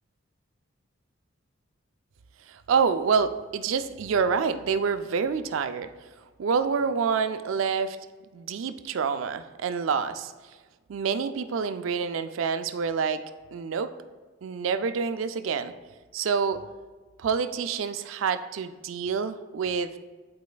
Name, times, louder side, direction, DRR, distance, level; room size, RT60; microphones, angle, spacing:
voice 1, 2.5-5.9 6.4-8.0 8.3-10.3 10.9-13.2 13.5-13.9 14.4-15.7 16.1-16.6 17.2-19.9, right 6 dB, 80° right, 11 dB, 0.4 m, -27 dB
11.5 x 4.1 x 2.3 m, 1.3 s
head